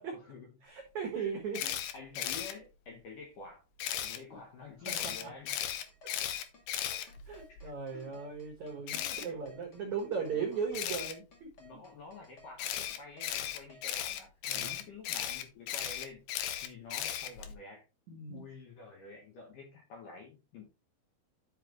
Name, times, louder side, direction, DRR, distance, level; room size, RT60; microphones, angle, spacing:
voice 1, 0.6-1.6 4.3-4.4 4.9-5.3 6.8-11.5 14.4-14.8 18.1-18.4, right 6 dB, 85° right, 1 dB, 1.6 m, -38 dB
voice 2, 1.1-3.6 4.0-5.6 7.5-8.0 9.0-9.4 10.3-11.0 11.6-16.2 16.6-17.8 18.3-20.6, left 4 dB, 70° left, 1 dB, 2.0 m, -49 dB
Camera, 1.5-2.5 3.8-4.2 4.9-7.6 8.9-9.3 10.7-11.1 12.6-17.5, left 11 dB, 90° left, 2.2 m, -36 dB
sound 1, 5.5-13.8, left 1 dB, 45° left, 1.3 m, -58 dB
10.5 x 5.8 x 3.1 m, 0.30 s
omnidirectional pair, 5.7 m